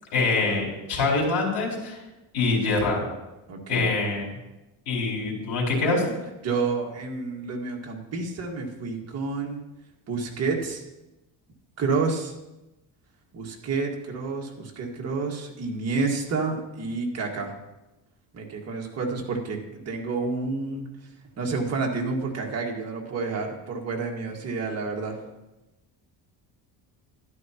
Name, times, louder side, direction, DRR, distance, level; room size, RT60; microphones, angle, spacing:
voice 1, 0.1-2.0 2.3-3.0 3.7-4.3 4.9-6.0, left 3 dB, 65° left, -3 dB, 4.5 m, -24 dB
voice 2, 3.5-3.9 6.4-9.6 10.1-10.8 11.8-12.3 13.3-17.5 18.3-20.9 21.4-25.2, right 4 dB, 35° right, 0 dB, 1.7 m, -29 dB
13.0 x 11.0 x 2.9 m, 0.98 s
cardioid pair, 165°, 42 cm